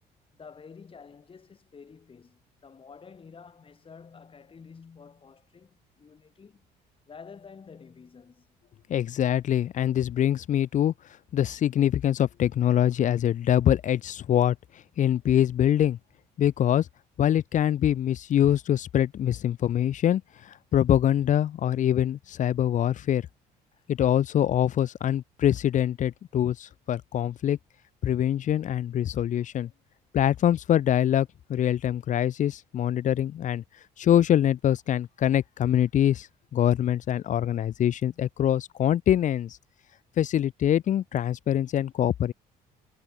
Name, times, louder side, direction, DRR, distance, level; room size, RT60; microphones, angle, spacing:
voice 1, 0.3-6.6 7.1-8.5 23.7-23.9, left 5 dB, 30° left, 5.5 m, -49 dB
voice 2, 8.9-10.9 11.3-14.6 15.0-16.0 16.4-16.9 17.2-23.2 23.9-27.6 28.0-29.7 30.1-33.6 34.0-36.3 36.5-39.6 40.2-42.3, left 10 dB, 50° left, 0.7 m, -24 dB
cardioid pair, 110°, 17 cm